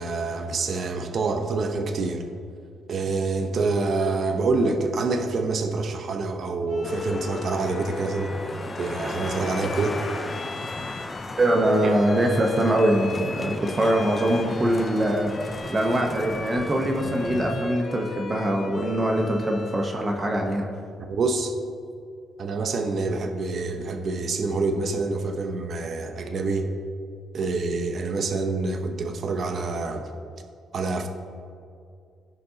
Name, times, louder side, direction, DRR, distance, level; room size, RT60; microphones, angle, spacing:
voice 1, 0.0-2.2 2.9-8.4 8.8-10.0 11.8-11.9 21.0-21.5 22.4-26.7 27.3-30.0 30.7-31.1, right 3 dB, 55° right, 5 dB, 0.8 m, -26 dB
Bowed string instrument, 6.7-20.1, left 3 dB, 45° left, 1.2 m, -38 dB
sound 1, 6.8-17.6, left 2 dB, 25° left, 0.4 m, -36 dB
voice 2, 11.4-15.3 15.7-20.7, right 1 dB, 30° right, 2 dB, 0.9 m, -23 dB
15.0 x 5.3 x 2.8 m, 2.3 s
cardioid pair, 90°, 0 cm